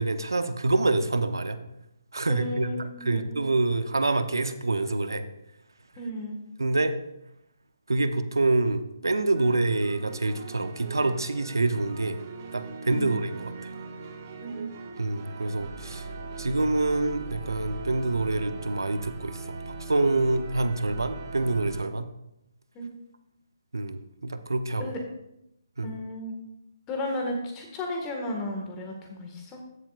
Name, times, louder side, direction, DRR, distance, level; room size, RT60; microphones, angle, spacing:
voice 1, 0.0-1.6 2.1-2.7 3.0-5.2 6.6-6.9 7.9-12.2 12.5-13.7 15.0-16.1 16.4-22.1 23.7-24.9 25.8-25.9, right 2 dB, 80° right, 10 dB, 0.8 m, -26 dB
voice 2, 2.3-3.5 6.0-6.4 12.8-13.2 14.4-14.7 22.7-22.9 24.8-25.0 25.8-26.3 26.9-29.6, left 1 dB, 20° left, 2 dB, 1.8 m, -34 dB
sound 1, 9.4-21.8, right 3 dB, 40° right, 1.9 m, -40 dB
14.0 x 7.3 x 2.5 m, 0.84 s
figure-of-eight pair, 145°, 2 cm